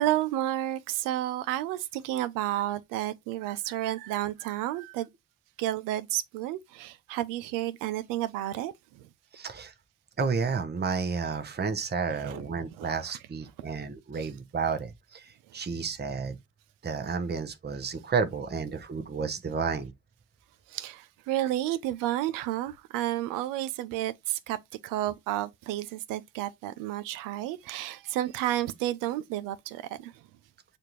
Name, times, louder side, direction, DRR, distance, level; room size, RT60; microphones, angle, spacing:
voice 1, 0.0-5.1 5.6-9.0 12.1-12.4 12.8-12.9 20.7-24.6 24.8-30.1, right 14 dB, 90° right, 0.5 m, -31 dB
voice 2, 9.3-9.7 10.2-16.4 16.8-19.9, right 5 dB, 30° right, 0.9 m, -31 dB
6.5 x 2.5 x 3.0 m
supercardioid pair, 50°, 32 cm